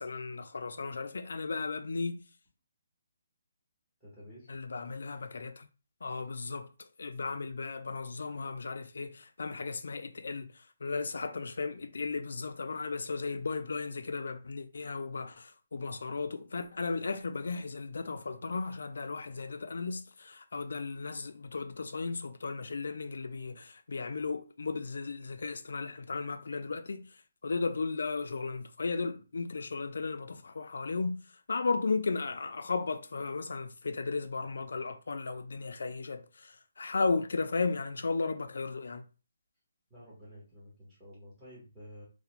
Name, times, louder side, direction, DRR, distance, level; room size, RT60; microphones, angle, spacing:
voice 1, 0.0-2.3 4.5-5.7 6.0-31.2 31.5-39.0, left 4 dB, 75° left, 0.3 m, -35 dB
voice 2, 4.0-4.5 39.9-42.0, equal, 5° right, 1.0 m, -51 dB
2.4 x 2.1 x 2.9 m
hypercardioid pair, 175°, 0 cm